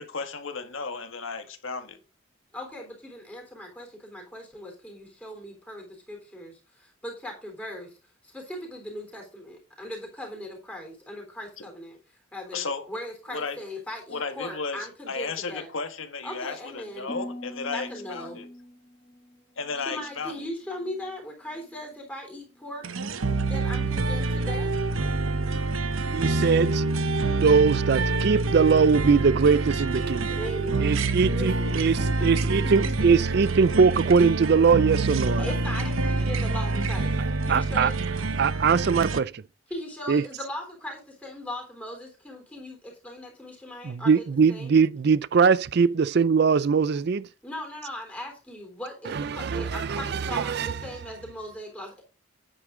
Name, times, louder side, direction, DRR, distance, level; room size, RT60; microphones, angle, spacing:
voice 1, 0.0-2.0 12.5-12.9 13.3-13.6 14.1-18.5 19.6-20.5, left 4 dB, 70° left, 1.6 m, -34 dB
voice 2, 2.5-8.0 8.2-12.0 12.3-15.7 16.2-17.1 17.7-18.4 19.8-22.8 23.5-24.7 30.4-33.1 35.4-37.2 37.5-38.5 39.7-44.8 47.4-52.0, left 1 dB, 5° left, 3.4 m, -39 dB
Harp, 17.1-21.2 21.5-22.0 22.5-22.9, left 1 dB, 25° left, 1.4 m, -44 dB
sound 1, 22.8-39.2, right 3 dB, 75° right, 0.9 m, -26 dB
voice 3, 26.1-26.8 27.3-30.4 30.8-35.4 37.5-37.9 38.4-39.4 40.1-40.2 43.8-47.3 49.1-50.7, right 5 dB, 50° right, 0.4 m, -22 dB
9.8 x 8.0 x 3.8 m
head